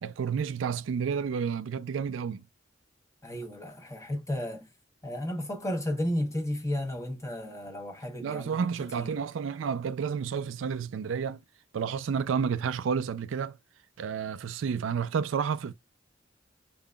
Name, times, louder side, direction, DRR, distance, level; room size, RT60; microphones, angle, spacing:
voice 1, 0.0-2.4 8.2-11.4 11.7-13.6 14.0-15.7, right 6 dB, 85° right, 0.4 m, -30 dB
voice 2, 3.2-4.7 5.0-8.7 8.9-9.2, left 1 dB, 15° left, 1.0 m, -33 dB
4.8 x 3.7 x 2.2 m
head